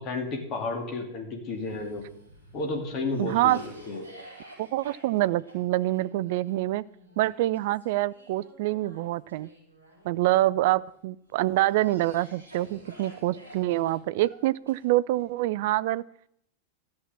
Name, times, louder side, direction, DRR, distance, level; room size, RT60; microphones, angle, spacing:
voice 1, 0.0-2.0 2.5-4.1, left 3 dB, 35° left, 3 dB, 2.5 m, -32 dB
Cough, 1.5-10.7 11.3-15.2, right 1 dB, 85° left, 5.6 m, -50 dB
voice 2, 3.2-3.6 4.6-6.8 7.2-9.5 10.0-16.0, right 16 dB, 50° right, 20 dB, 0.4 m, -26 dB
12.5 x 7.5 x 7.1 m, 0.72 s
figure-of-eight pair, 90°, 0 cm